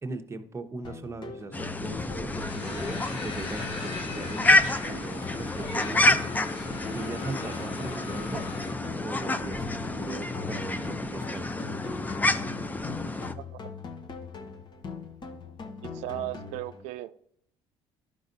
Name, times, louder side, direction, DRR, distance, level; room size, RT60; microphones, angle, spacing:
voice 1, 0.0-4.6 4.9-6.2 6.9-8.5 9.0-11.5, right 3 dB, 25° right, 0.9 m, -39 dB
sound 1, 0.8-16.8, left 4 dB, 40° left, 1.0 m, -41 dB
sound 2, 1.5-13.3, left 2 dB, 15° left, 0.5 m, -29 dB
sound 3, 2.3-8.7, left 3 dB, 85° left, 1.9 m, -40 dB
voice 2, 15.8-17.1, right 16 dB, 75° right, 0.4 m, -36 dB
11.5 x 5.3 x 2.6 m
supercardioid pair, 75°, 12 cm